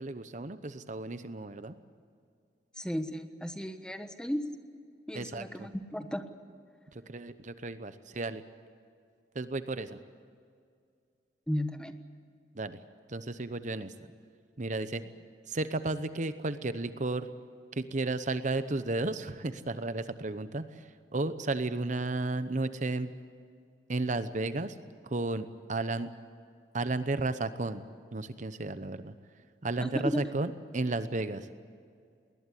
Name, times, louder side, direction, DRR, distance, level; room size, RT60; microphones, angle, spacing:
voice 1, 0.0-1.7 5.1-5.7 6.9-8.4 9.3-10.0 12.5-12.8 13.1-13.9 14.6-15.0 15.5-17.3 17.7-23.1 23.9-24.7 25.0-26.1 26.7-27.8 28.1-29.1 29.6-31.5, right 2 dB, 45° right, 12 dB, 0.9 m, -33 dB
voice 2, 2.8-4.4 5.1-6.2 11.5-12.0 29.8-30.3, equal, 5° left, 8 dB, 1.3 m, -34 dB
21.0 x 20.0 x 9.9 m, 2.2 s
head